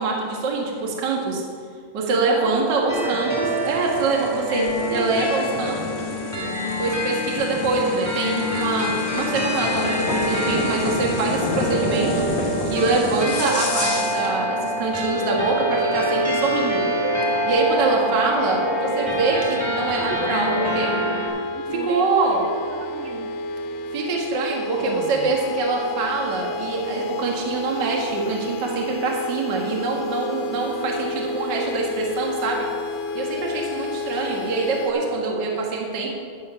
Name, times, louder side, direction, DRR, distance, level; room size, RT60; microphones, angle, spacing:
voice 1, 0.0-1.4 1.9-5.8 6.8-12.3 12.6-16.8 17.5-20.5 20.7-20.9 21.8-22.4 23.9-32.7 33.1-36.1, right 3 dB, 50° right, -1 dB, 1.3 m, -24 dB
voice 2, 2.2-3.2 4.8-6.6 18.0-19.2 20.0-21.0 21.5-23.4 24.4-25.3, right 4 dB, 80° right, 3 dB, 2.1 m, -36 dB
sound 1, 2.9-21.3, left 1 dB, 10° right, 1.6 m, -26 dB
sound 2, 3.4-14.4, left 2 dB, 55° left, 1.3 m, -31 dB
sound 3, 15.0-34.9, left 2 dB, 80° left, 2.4 m, -31 dB
11.5 x 7.3 x 5.8 m, 2.1 s
omnidirectional pair, 4.5 m